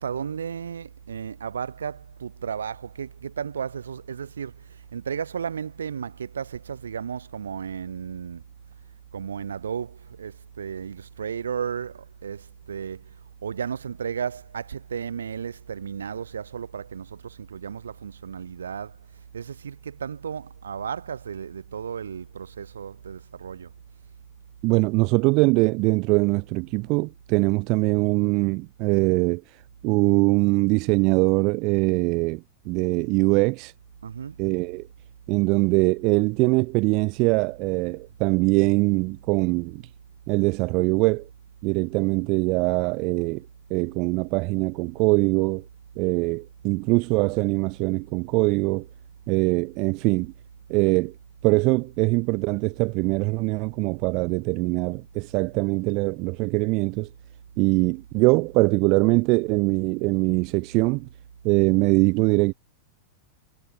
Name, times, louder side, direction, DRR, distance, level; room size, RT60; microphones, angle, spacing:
voice 1, 0.0-8.4 9.1-13.2 13.4-19.0 19.3-23.7 34.0-34.4, right 7 dB, 70° right, 2.2 m, -34 dB
voice 2, 24.6-33.7 34.4-34.9 35.3-39.8 40.3-41.3 41.6-45.6 46.0-48.9 49.3-50.3 50.7-51.1 51.4-57.1 57.6-61.1 61.4-62.5, right 27 dB, 40° right, 0.6 m, -22 dB
figure-of-eight pair, 90°, 0 cm